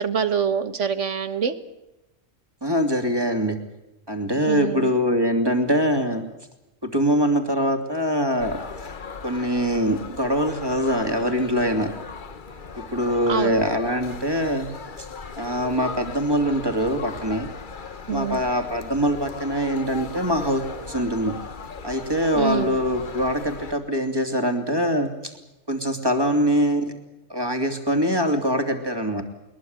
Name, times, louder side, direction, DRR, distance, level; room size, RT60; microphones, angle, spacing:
voice 1, 0.0-1.5 4.5-4.9 13.3-13.6 18.1-18.4 22.3-22.8, right 6 dB, 75° right, 11 dB, 1.8 m, -25 dB
voice 2, 2.6-3.6 4.1-6.2 6.8-8.6 9.2-11.9 12.8-14.7 15.0-15.1 15.4-17.5 18.1-21.3 21.8-25.3 25.7-26.9 27.3-29.2, equal, 20° right, 6 dB, 3.0 m, -23 dB
sound 1, 8.4-23.7, left 5 dB, 45° left, 1.2 m, -38 dB
22.0 x 21.5 x 8.0 m, 0.96 s
omnidirectional pair, 1.3 m